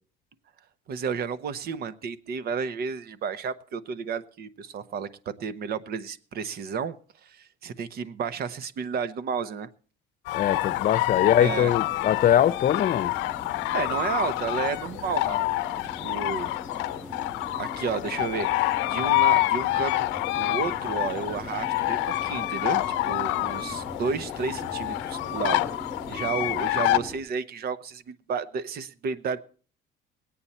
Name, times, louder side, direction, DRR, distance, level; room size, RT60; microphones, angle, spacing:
voice 1, 0.9-5.1 5.4-6.9 7.2-9.7 10.9-11.0 11.4-11.7 13.7-15.5 16.0-16.5 17.6-18.5 18.8-20.1 20.3-25.7 26.1-29.4, right 6 dB, 55° right, 0.9 m, -32 dB
sound 1, 10.3-27.0, left 18 dB, 85° left, 0.7 m, -27 dB
voice 2, 10.3-13.1, left 10 dB, 45° left, 0.8 m, -22 dB
sound 2, 10.6-27.2, left 1 dB, ahead, 2.8 m, -42 dB
20.5 x 8.7 x 4.3 m
cardioid pair, 125°, 19 cm